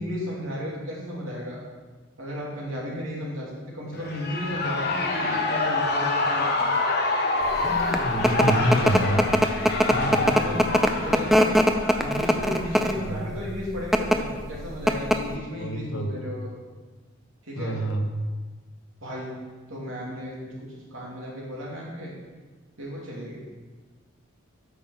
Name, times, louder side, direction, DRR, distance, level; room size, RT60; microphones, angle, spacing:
voice 1, 0.0-1.6 2.2-6.8 8.3-8.6 9.8-11.6 12.0-16.5 17.4-17.8 19.0-19.4 19.7-22.1 22.8-23.4, equal, 75° right, -4 dB, 2.7 m, -34 dB
Shout / Cheering, 3.9-12.9, left 3 dB, 50° left, 1.1 m, -27 dB
sound 1, 7.6-13.1 13.8-14.2 14.5-14.6 14.9-15.4, equal, ahead, 0.4 m, -21 dB
voice 2, 7.7-9.2 9.9-10.3 12.9-13.4 15.5-16.1 17.6-18.1, right 1 dB, 80° left, 3 dB, 1.1 m, -27 dB
8.4 x 5.7 x 5.8 m, 1.4 s
head